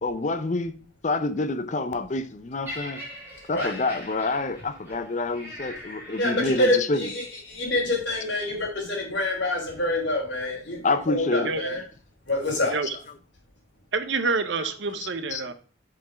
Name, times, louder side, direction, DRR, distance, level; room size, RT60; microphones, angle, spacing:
voice 1, 0.0-0.7 1.0-3.0 3.5-7.4 10.8-11.5 12.8-13.0 14.6-15.5, left 3 dB, 35° left, 0.5 m, -28 dB
Laughter, 2.6-6.9 7.7-7.9, left 1 dB, 10° right, 2.3 m, -41 dB
voice 2, 6.2-11.8 12.3-12.7, left 1 dB, 60° left, 3.2 m, -26 dB
voice 3, 11.3-11.7 12.7-13.0 13.9-15.5, right 4 dB, 65° right, 0.8 m, -27 dB
5.9 x 5.0 x 4.9 m
head